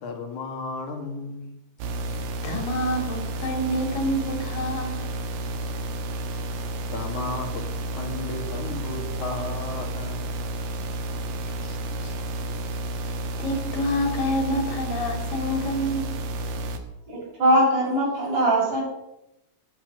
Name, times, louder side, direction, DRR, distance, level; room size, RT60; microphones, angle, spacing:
voice 1, 0.0-1.5 6.9-7.7 8.0-10.4, left 3 dB, 65° left, 4 dB, 3.6 m, -34 dB
sound 1, 1.8-16.8, right 1 dB, 85° right, 3.1 m, -31 dB
voice 2, 2.4-5.1 11.6-12.1 13.4-16.1, equal, 85° left, 4 dB, 4.5 m, -28 dB
voice 3, 17.1-18.8, right 1 dB, 65° right, -4 dB, 8.2 m, -21 dB
13.5 x 13.0 x 6.7 m, 0.89 s
omnidirectional pair, 3.8 m